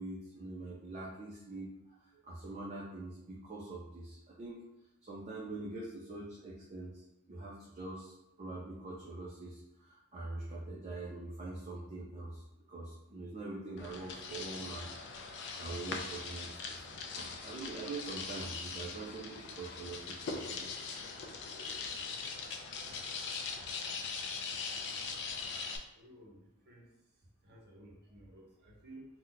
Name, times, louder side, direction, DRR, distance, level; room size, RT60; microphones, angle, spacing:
voice 1, 0.0-4.6 5.0-14.9 15.5-20.4 20.8-21.0 22.8-22.9, right 2 dB, 30° right, -4 dB, 0.5 m, -44 dB
sound 1, 13.8-25.8, left 5 dB, 50° left, 0.4 m, -41 dB
voice 2, 24.4-25.2 25.9-26.9 27.4-29.1, right 1 dB, 50° right, -2 dB, 0.9 m, -56 dB
2.7 x 2.1 x 3.8 m, 0.86 s
head